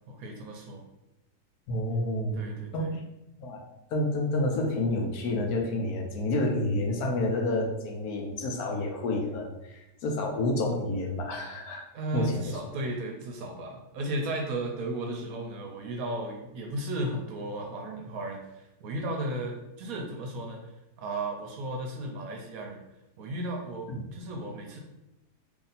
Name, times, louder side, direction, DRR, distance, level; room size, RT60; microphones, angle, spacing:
voice 1, 0.1-0.8 2.3-2.9 11.9-22.8 23.2-24.8, right 1 dB, 70° right, 2 dB, 0.9 m, -35 dB
voice 2, 1.7-2.4 2.7-3.0 3.4-3.6 3.9-11.8 12.1-12.6 23.9-24.0, left 1 dB, 70° left, 1 dB, 1.1 m, -29 dB
2.8 x 2.6 x 3.9 m, 0.93 s
omnidirectional pair, 1.7 m